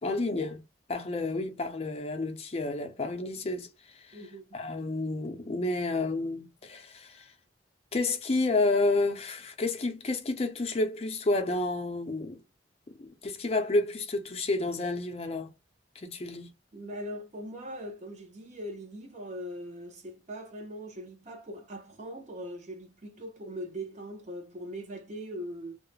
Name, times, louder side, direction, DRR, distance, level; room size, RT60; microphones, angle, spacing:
voice 1, 0.0-0.6 0.9-4.2 4.5-7.3 7.9-12.4 13.0-15.5 16.0-16.5, left 2 dB, 35° left, 0.4 m, -30 dB
voice 2, 4.1-4.4 16.7-25.8, equal, 40° right, 0.6 m, -41 dB
2.3 x 2.0 x 3.1 m
head